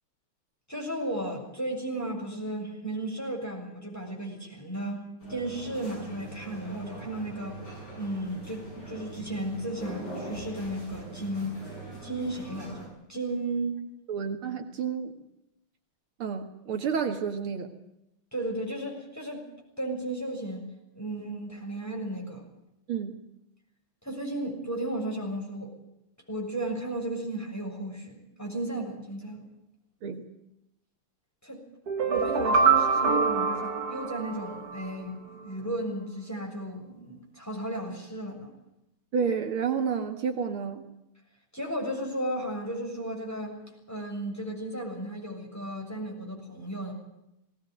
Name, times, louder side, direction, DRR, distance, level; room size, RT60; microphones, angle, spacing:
voice 1, 0.7-7.6 7.9-11.6 12.0-13.9 18.3-19.4 19.8-20.7 20.9-22.5 24.0-25.7 26.3-29.4 31.4-31.6 32.0-38.5 41.5-46.9, right 1 dB, 5° left, 0 dB, 6.6 m, -34 dB
sound 1, 5.2-12.9, right 2 dB, 50° left, 8.2 m, -42 dB
voice 2, 14.1-15.1 16.2-17.7 22.9-23.1 30.0-30.2 39.1-40.8, right 6 dB, 75° right, 5 dB, 2.6 m, -30 dB
sound 2, 31.9-34.9, right 5 dB, 50° right, 1.7 m, -25 dB
19.5 x 18.5 x 9.3 m, 0.84 s
omnidirectional pair, 2.4 m